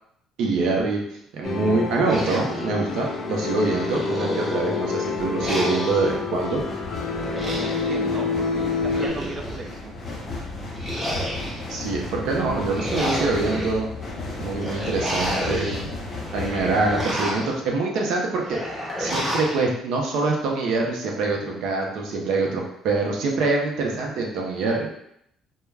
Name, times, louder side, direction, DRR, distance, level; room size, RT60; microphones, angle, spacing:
voice 1, 0.4-1.0 1.3-6.6 11.7-13.9 14.4-15.8 16.3-18.6 19.0-24.9, right 3 dB, 75° right, 0 dB, 0.6 m, -24 dB
sound 1, 1.4-9.1, left 4 dB, 45° left, 0.4 m, -28 dB
sound 2, 2.0-3.2 3.6-4.8 5.4-6.1 7.1-7.9 8.7-9.7 10.7-11.7 12.5-13.7 14.6-15.8 16.2-17.6 18.4-19.6, equal, 10° right, 1.1 m, -30 dB
sound 3, 5.1-17.1, left 2 dB, 25° left, 0.8 m, -35 dB
voice 2, 7.5-9.9, right 4 dB, 35° right, 3 dB, 0.3 m, -36 dB
2.2 x 2.1 x 3.3 m, 0.74 s
cardioid pair, 110°, 0 cm